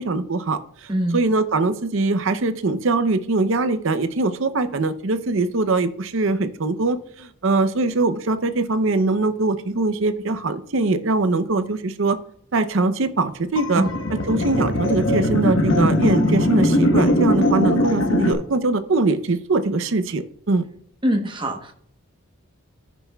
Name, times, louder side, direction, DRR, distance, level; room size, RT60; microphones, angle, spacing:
voice 1, 0.0-12.2 12.5-13.8 14.1-20.6, right 3 dB, 60° right, 11 dB, 0.6 m, -22 dB
sound 1, 13.6-18.3, left 1 dB, 60° left, 1.1 m, -20 dB
voice 2, 21.0-21.7, equal, 20° right, 4 dB, 0.9 m, -23 dB
14.0 x 6.0 x 2.3 m, 0.66 s
head